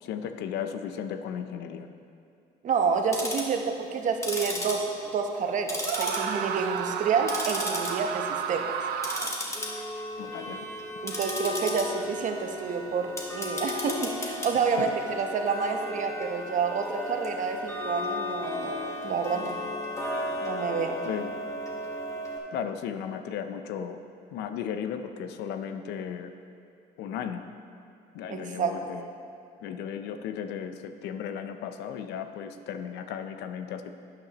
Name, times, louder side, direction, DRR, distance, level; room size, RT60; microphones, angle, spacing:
voice 1, 0.0-1.9 10.2-10.6 14.8-14.9 21.0-21.3 22.5-24.0 24.3-26.3 27.0-27.4 28.1-29.1 29.6-33.9, left 8 dB, 85° left, 8 dB, 0.6 m, -35 dB
voice 2, 2.6-4.9 5.1-8.7 10.5-10.6 11.0-14.9 15.2-18.8 19.0-19.6 20.4-21.0 28.3-28.7, right 5 dB, 50° right, 4 dB, 0.9 m, -29 dB
Tick-tock, 2.9-3.6 4.1-5.4 5.7-6.6 6.9-7.9 8.3-8.5 9.0-22.4, left 1 dB, 15° left, 1.4 m, -34 dB
Screaming, 5.8-9.6, right 8 dB, 70° right, 0.5 m, -32 dB
11.5 x 8.7 x 3.0 m, 2.5 s
cardioid pair, 110°, 17 cm